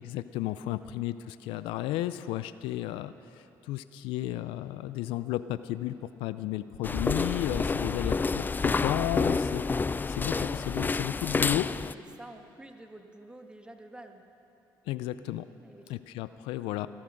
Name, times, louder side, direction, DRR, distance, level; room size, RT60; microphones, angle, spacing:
voice 1, 0.0-9.6 10.1-11.7 14.9-15.5 15.9-16.9, left 14 dB, 85° left, 14 dB, 0.4 m, -33 dB
voice 2, 0.6-1.0 7.5-8.0 10.2-10.7 11.9-14.2 15.6-15.9, right 1 dB, 10° right, 4 dB, 1.6 m, -49 dB
sound 1, 6.8-11.9, left 4 dB, 20° left, 0.3 m, -29 dB
18.0 x 12.5 x 6.3 m, 2.8 s
supercardioid pair, 70°, 9 cm